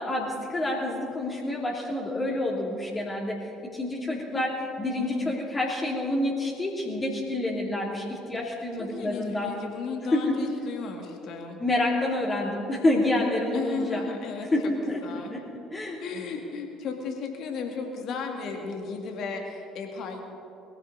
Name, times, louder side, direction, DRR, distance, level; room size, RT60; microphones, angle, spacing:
voice 1, 0.0-3.4 3.6-9.5 10.1-10.4 11.6-14.0 14.5-15.0 15.3-15.4 15.7-16.0, left 1 dB, 25° left, -4 dB, 2.9 m, -28 dB
voice 2, 4.9-5.3 8.8-11.6 13.5-14.5 15.0-15.4 16.0-20.2, left 5 dB, 55° left, 3 dB, 2.3 m, -35 dB
22.0 x 15.5 x 4.1 m, 2.8 s
figure-of-eight pair, 55°, 0 cm